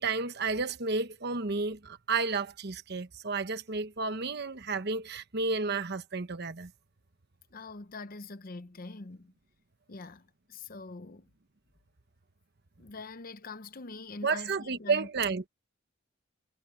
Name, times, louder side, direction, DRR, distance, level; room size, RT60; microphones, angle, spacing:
voice 1, 0.0-6.7 14.2-15.4, right 4 dB, 55° right, 1.1 m, -31 dB
voice 2, 7.5-9.3 9.9-11.3 12.8-15.1, left 3 dB, 50° left, 0.8 m, -44 dB
head